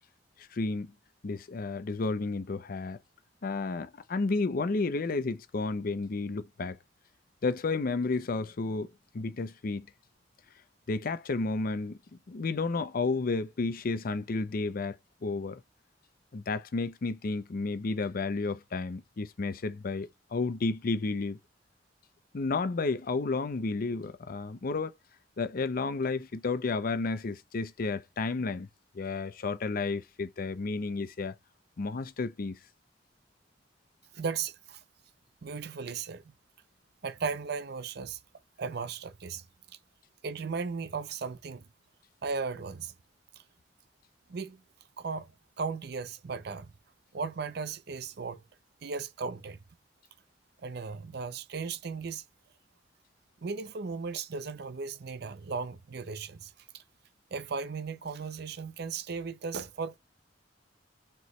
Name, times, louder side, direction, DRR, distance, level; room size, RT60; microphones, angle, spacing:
voice 1, 0.4-0.9 1.2-3.0 3.4-6.8 7.4-8.9 9.1-9.9 10.9-12.0 12.3-15.0 15.2-15.6 16.3-21.4 22.3-24.9 25.4-28.7 28.9-31.3 31.8-32.6, left 3 dB, 50° left, 0.5 m, -32 dB
voice 2, 34.1-34.8 35.4-36.3 37.0-38.2 38.6-39.4 40.2-41.7 42.2-42.9 44.3-44.6 45.0-45.3 45.6-46.7 47.1-48.4 48.8-49.6 50.6-52.2 53.4-56.8 57.3-60.0, right 5 dB, 60° right, 0.5 m, -36 dB
4.5 x 3.0 x 3.1 m
head